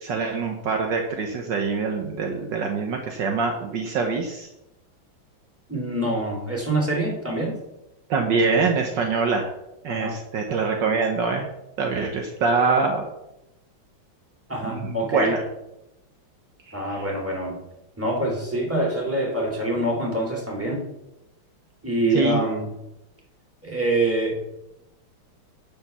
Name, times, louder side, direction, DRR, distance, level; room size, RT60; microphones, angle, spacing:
voice 1, 0.0-4.5 8.1-9.5 9.8-11.5 11.8-13.1 14.6-15.4 16.7-17.0 22.1-22.4, right 4 dB, 65° right, 3 dB, 1.6 m, -24 dB
voice 2, 5.7-7.6 9.9-10.2 14.5-15.4 16.7-17.6 18.0-20.8 21.8-22.7 23.6-24.4, right 1 dB, 5° right, -2 dB, 3.0 m, -25 dB
10.5 x 5.2 x 6.8 m, 0.90 s
omnidirectional pair, 2.2 m